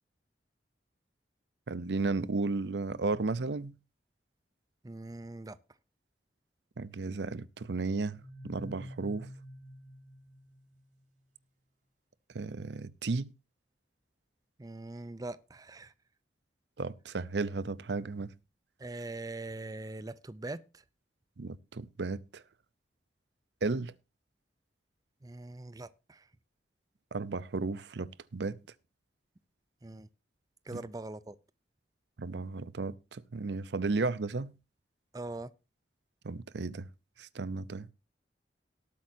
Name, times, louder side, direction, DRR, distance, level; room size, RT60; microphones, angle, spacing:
voice 1, 1.7-3.7 6.8-9.3 12.3-13.3 16.8-18.3 21.4-22.4 23.6-23.9 27.1-28.6 30.7-30.8 32.2-34.5 36.2-36.9 37.2-37.9, right 3 dB, 70° right, 0.6 m, -34 dB
voice 2, 4.8-5.6 14.6-15.9 18.8-20.6 25.2-26.2 29.8-30.1 30.7-31.4 35.1-35.5, right 2 dB, 20° right, 0.5 m, -42 dB
sound 1, 8.1-11.0, equal, 45° right, 3.9 m, -48 dB
18.5 x 8.6 x 2.7 m
head